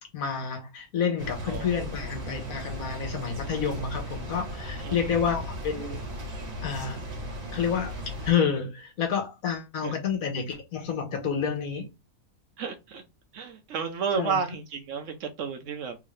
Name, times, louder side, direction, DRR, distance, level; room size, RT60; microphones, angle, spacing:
voice 1, 0.1-6.1 6.6-7.0 7.5-7.9 8.2-11.9 14.1-14.4, left 7 dB, 70° left, 1.5 m, -29 dB
sound 1, 1.2-8.3, equal, 50° right, 1.7 m, -36 dB
voice 2, 4.8-5.2 9.8-9.9 12.6-13.0 13.3-16.0, right 6 dB, 65° right, 0.9 m, -32 dB
3.7 x 2.5 x 3.1 m
omnidirectional pair, 1.5 m